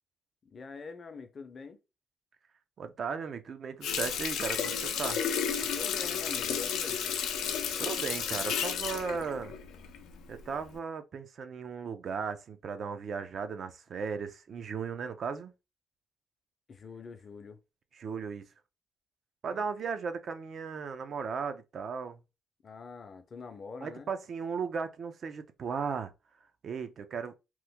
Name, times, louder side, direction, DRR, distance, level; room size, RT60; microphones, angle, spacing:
voice 1, 0.4-1.8 5.6-7.0 16.7-17.6 19.5-19.6 22.6-24.1, left 4 dB, 45° left, 0.6 m, -45 dB
voice 2, 2.8-5.2 7.8-9.6 10.3-15.5 17.9-18.5 19.4-22.2 23.8-26.1 26.6-27.3, right 6 dB, 55° right, 0.5 m, -36 dB
Water tap faucet, 3.8-10.2 10.6-10.8, left 7 dB, 85° left, 0.5 m, -32 dB
3.0 x 2.1 x 3.5 m
cardioid pair, 90°, 0 cm